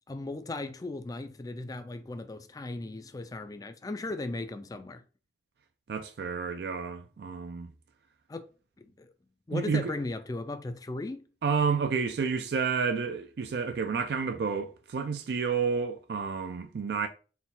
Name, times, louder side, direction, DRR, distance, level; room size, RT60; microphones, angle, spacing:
voice 1, 0.1-5.0 8.3-8.5 8.8-9.1 9.5-11.3, left 2 dB, 20° left, 0.3 m, -37 dB
voice 2, 5.9-7.7 9.5-9.9 11.4-17.1, right 5 dB, 65° right, 0.4 m, -30 dB
4.2 x 2.3 x 3.7 m
head